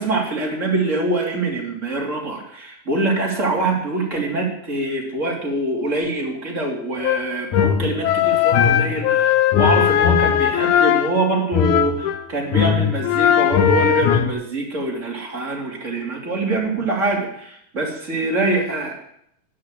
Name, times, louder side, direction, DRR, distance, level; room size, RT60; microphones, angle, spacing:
voice 1, 0.0-18.9, right 2 dB, 20° right, -2 dB, 3.2 m, -24 dB
sound 1, 7.0-12.2 12.5-14.3, left 9 dB, 75° left, 2.3 m, -18 dB
10.5 x 10.0 x 7.6 m, 0.71 s
omnidirectional pair, 3.9 m